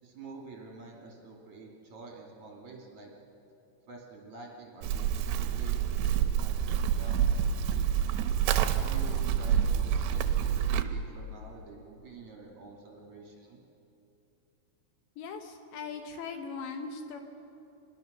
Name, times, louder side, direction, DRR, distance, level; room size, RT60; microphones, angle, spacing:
voice 1, 0.0-3.1 3.9-7.5 8.7-13.6, right 3 dB, 45° right, -2 dB, 3.0 m, -48 dB
Livestock farm animals working animals, 4.8-10.8, right 9 dB, 75° right, 2.9 m, -27 dB
voice 2, 15.2-17.2, left 5 dB, 70° left, 5 dB, 3.0 m, -39 dB
26.0 x 21.5 x 6.7 m, 2.9 s
omnidirectional pair, 5.6 m